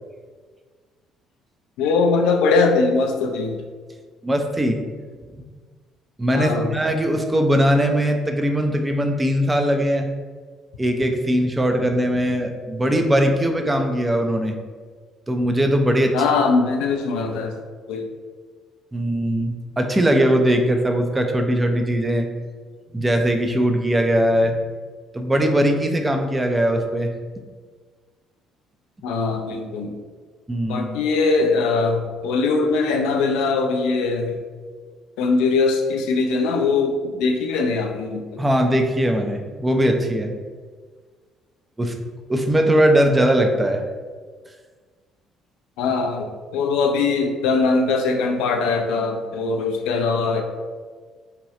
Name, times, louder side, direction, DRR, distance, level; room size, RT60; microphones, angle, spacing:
voice 1, 1.8-3.6 6.3-6.7 16.1-17.5 17.9-18.1 29.0-29.9 30.7-34.4 35.2-38.4 45.8-50.4, left 4 dB, 70° left, 4 dB, 0.4 m, -21 dB
voice 2, 4.2-4.8 6.2-10.1 10.8-14.5 15.3-16.4 18.9-22.3 22.9-24.6 25.1-27.2 30.5-30.9 38.4-40.3 41.8-41.9 42.3-43.8, equal, 20° right, 5 dB, 0.5 m, -20 dB
2.8 x 2.3 x 4.2 m, 1.5 s
hypercardioid pair, 50°, 0 cm